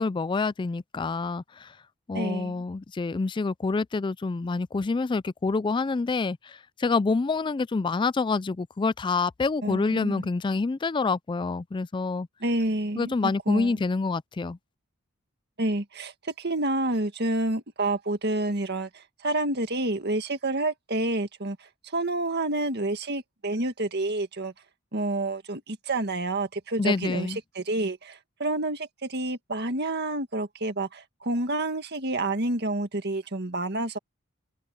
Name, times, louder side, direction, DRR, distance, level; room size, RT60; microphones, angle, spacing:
voice 1, 0.0-1.7 2.1-12.3 13.0-14.6 26.8-27.4, left 4 dB, 25° left, 0.3 m, -27 dB
voice 2, 2.1-2.6 9.6-10.3 12.4-13.1 13.5-13.7 15.6-21.6 21.9-24.5 24.9-34.0, right 2 dB, 50° right, 1.8 m, -29 dB
head